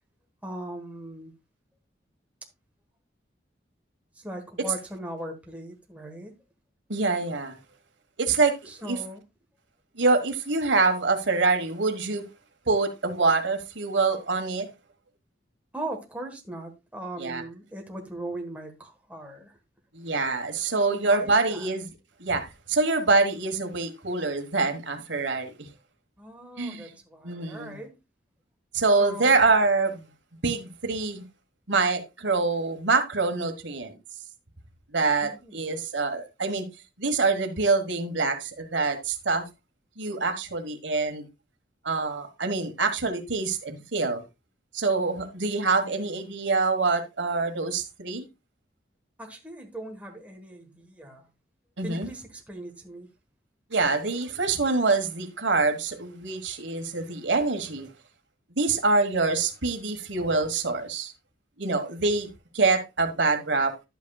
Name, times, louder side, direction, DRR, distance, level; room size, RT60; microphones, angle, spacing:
voice 1, 0.4-1.3 4.1-6.3 8.7-9.2 15.7-19.6 20.9-21.7 26.2-28.0 29.0-29.5 35.2-35.6 49.2-51.2 51.8-53.1, right 1 dB, 10° right, 1.4 m, -39 dB
voice 2, 6.9-7.6 8.2-9.0 10.0-12.2 12.7-14.7 17.2-17.4 19.9-21.9 22.2-25.7 26.6-26.9 27.2-27.8 28.7-30.1 30.4-31.2 31.7-33.9 34.9-36.6 37.0-39.4 40.0-41.3 41.8-44.2 44.7-48.2 51.8-52.1 53.7-57.9 58.6-61.1 61.6-62.3 62.5-63.7, right 3 dB, 80° right, 1.4 m, -25 dB
11.5 x 8.3 x 2.3 m
head